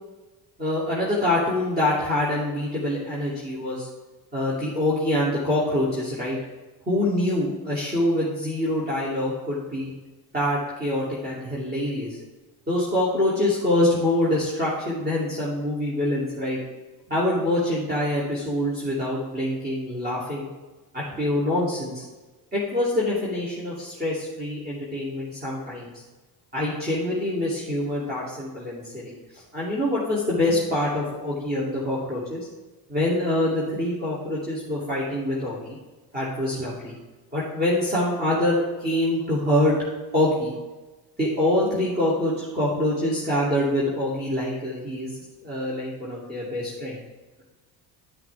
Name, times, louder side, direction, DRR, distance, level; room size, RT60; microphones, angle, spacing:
voice 1, 0.6-3.9 4.3-6.4 6.9-9.9 10.3-12.2 12.7-16.6 17.1-20.5 20.9-22.0 22.5-25.9 26.5-32.4 32.9-35.8 36.1-37.0 37.3-39.7 40.1-40.5 41.2-47.0, left 1 dB, 20° right, -8 dB, 3.0 m, -25 dB
12.5 x 5.9 x 3.6 m, 1.2 s
supercardioid pair, 80°, 44 cm